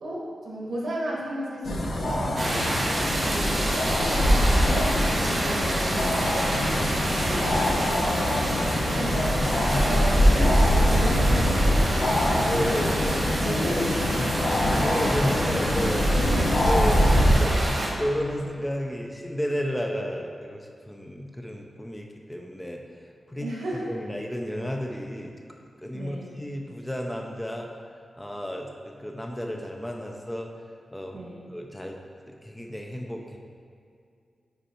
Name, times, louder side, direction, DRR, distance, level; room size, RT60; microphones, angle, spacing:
voice 1, 0.0-2.7 3.2-6.7 7.2-9.4 9.7-12.9 13.4-13.9 14.5-15.5 16.1-16.4 23.4-23.9 25.9-26.3 31.1-31.4, right 1 dB, 80° right, -4 dB, 1.3 m, -34 dB
sound 1, 1.6-17.3, equal, 70° left, 0.8 m, -23 dB
sound 2, 2.3-17.9, right 1 dB, 35° right, 1.1 m, -29 dB
voice 2, 7.0-7.3 8.8-9.1 9.5-9.8 10.1-10.2 12.3-13.9 14.3-16.1 16.7-17.0 17.4-22.8 23.3-25.4 25.8-27.7 28.2-30.5 30.9-31.2 31.5-32.0 32.3-33.4, equal, 5° left, 1 dB, 0.4 m, -32 dB
5.4 x 4.4 x 4.3 m, 2.3 s
wide cardioid pair, 170°, 0 cm